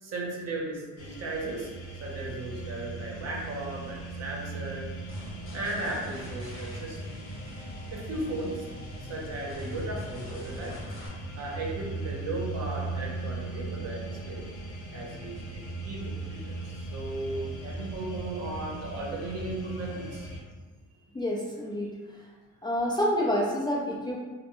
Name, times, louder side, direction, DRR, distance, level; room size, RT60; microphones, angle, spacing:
voice 1, 0.0-1.7 2.0-4.9 5.5-7.0 7.9-8.6 9.0-10.8 11.4-14.4 14.9-20.4, right 2 dB, 55° right, -2 dB, 0.7 m, -36 dB
sound 1, 1.0-20.4, right 2 dB, 90° left, 0.6 m, -39 dB
sound 2, 5.1-11.1, left 1 dB, 45° left, 0.9 m, -43 dB
voice 2, 21.1-21.9 22.6-24.2, equal, 15° left, -4 dB, 0.3 m, -28 dB
2.2 x 2.0 x 2.9 m, 1.3 s
cardioid pair, 90°, 30 cm